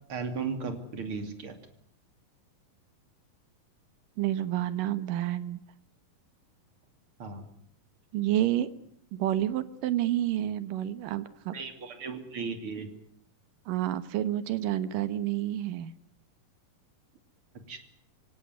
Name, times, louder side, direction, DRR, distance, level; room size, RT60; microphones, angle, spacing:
voice 1, 0.1-1.6 7.2-7.5 11.5-12.9 17.7-17.8, right 5 dB, 40° right, 7 dB, 3.3 m, -36 dB
voice 2, 4.2-5.6 8.1-8.7 9.1-11.5 13.7-15.9, right 12 dB, 75° right, 13 dB, 2.7 m, -29 dB
26.0 x 17.0 x 9.6 m, 0.70 s
omnidirectional pair, 4.0 m